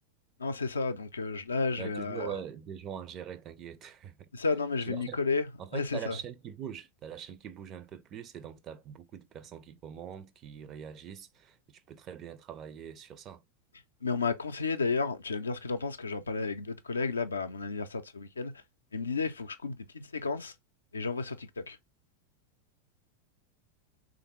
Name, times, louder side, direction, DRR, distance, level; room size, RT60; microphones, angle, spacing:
voice 1, 0.4-2.3 4.3-5.5 5.7-6.1 14.0-18.6 18.9-20.5 20.9-21.8, left 4 dB, 75° left, 0.4 m, -32 dB
voice 2, 1.8-4.3 4.8-5.2 5.6-13.4, right 8 dB, 35° right, 0.4 m, -43 dB
3.4 x 2.5 x 2.9 m
figure-of-eight pair, 85°, 0 cm